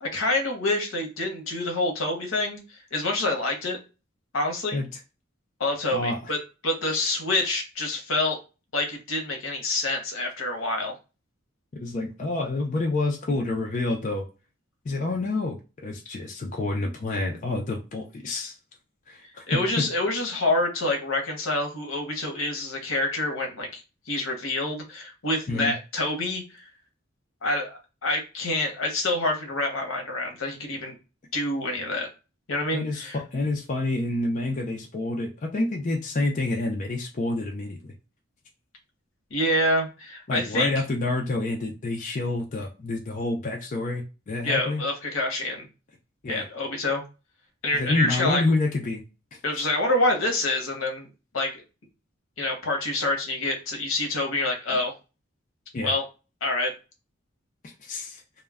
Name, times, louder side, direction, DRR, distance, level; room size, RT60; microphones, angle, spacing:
voice 1, 0.0-3.8 4.3-4.8 5.6-6.4 6.6-8.4 8.7-11.0 19.5-26.6 27.4-31.0 31.3-32.1 32.5-33.2 39.3-40.7 44.4-45.7 46.3-47.0 47.6-48.5 49.4-51.1 51.3-51.6 52.4-54.9 55.8-56.0 56.4-56.7, left 2 dB, 85° left, 2 dB, 0.8 m, -27 dB
voice 2, 5.9-6.3 11.7-14.3 14.8-18.6 19.1-19.8 25.5-25.7 32.7-37.9 40.3-44.8 46.2-46.4 47.7-49.0 49.3-49.4 55.7-55.9 57.8-58.2, left 2 dB, 40° left, 1 dB, 0.4 m, -28 dB
2.2 x 2.1 x 3.4 m, 0.30 s
head